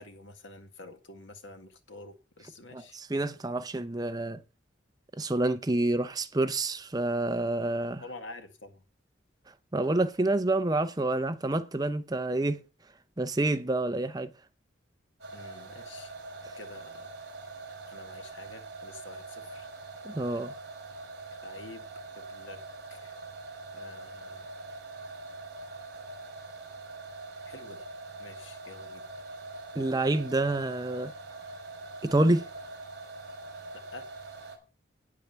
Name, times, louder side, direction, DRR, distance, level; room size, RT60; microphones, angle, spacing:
voice 1, 0.0-3.0 8.0-8.8 15.3-16.1 16.6-17.1 17.9-19.7 21.4-21.9 22.1-22.6 22.9-23.2 23.7-24.5 27.5-27.9 28.2-29.0 33.7-34.1, left 2 dB, 75° left, 1.9 m, -48 dB
voice 2, 2.7-4.4 5.1-8.0 9.7-12.6 13.2-14.3 20.0-20.5 29.7-31.1 32.0-32.5, right 2 dB, 20° right, 0.7 m, -28 dB
sound 1, 15.2-34.6, right 2 dB, 55° right, 3.4 m, -43 dB
9.6 x 8.5 x 5.7 m
head